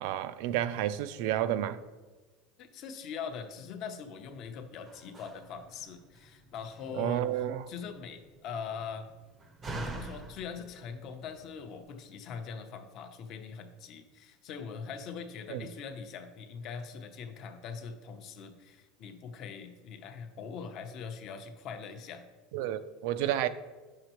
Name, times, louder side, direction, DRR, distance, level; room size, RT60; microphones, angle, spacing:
voice 1, 0.0-1.8 6.9-7.7 15.5-15.6 22.5-23.5, right 12 dB, 55° right, 13 dB, 0.3 m, -31 dB
voice 2, 2.6-9.1 9.8-22.2, left 6 dB, 35° left, 7 dB, 0.7 m, -42 dB
Slam, 4.2-11.8, right 2 dB, 15° right, 0.6 m, -46 dB
9.7 x 6.5 x 3.0 m, 1.3 s
supercardioid pair, 175°, 0 cm